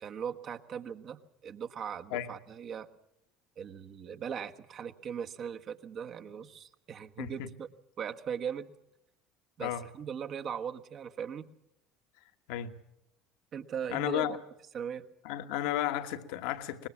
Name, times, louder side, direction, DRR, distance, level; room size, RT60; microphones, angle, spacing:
voice 1, 0.0-2.9 3.6-7.7 8.0-8.7 9.6-11.5 13.5-14.4 14.7-15.1, right 7 dB, 45° right, 1.3 m, -39 dB
voice 2, 7.2-7.5 9.6-9.8 12.5-12.7 13.9-14.4 15.2-16.9, left 12 dB, 65° left, 1.3 m, -33 dB
23.5 x 20.5 x 7.1 m
figure-of-eight pair, 65°, 0 cm